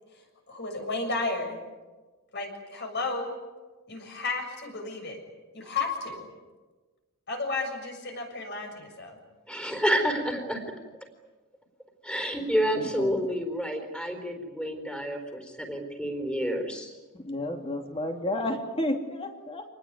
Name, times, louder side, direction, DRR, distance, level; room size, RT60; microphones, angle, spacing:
voice 1, 0.5-1.6 2.3-3.3 3.9-5.2 5.5-6.3 7.3-9.2, left 3 dB, 50° left, 3 dB, 7.0 m, -33 dB
voice 2, 9.5-10.6 12.0-16.9, equal, 5° left, 4 dB, 4.2 m, -29 dB
voice 3, 12.8-13.1 17.1-19.6, left 1 dB, 25° left, 3 dB, 3.1 m, -31 dB
27.0 x 20.0 x 9.7 m, 1.3 s
head